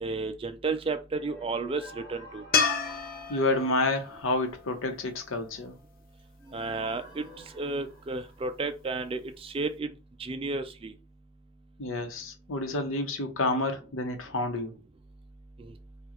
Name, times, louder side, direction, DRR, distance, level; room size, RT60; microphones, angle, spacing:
voice 1, 0.0-2.4 6.5-7.3 7.5-9.9 10.2-10.9 15.6-15.7, right 3 dB, 25° right, 0.4 m, -32 dB
sound 1, 1.1-4.8 6.4-9.0, equal, 15° left, 1.5 m, -50 dB
sound 2, 2.5-5.8 9.0-9.1, left 5 dB, 45° left, 0.7 m, -31 dB
voice 2, 3.3-5.7 11.8-14.7, left 2 dB, 75° left, 0.9 m, -29 dB
4.8 x 2.4 x 3.0 m
head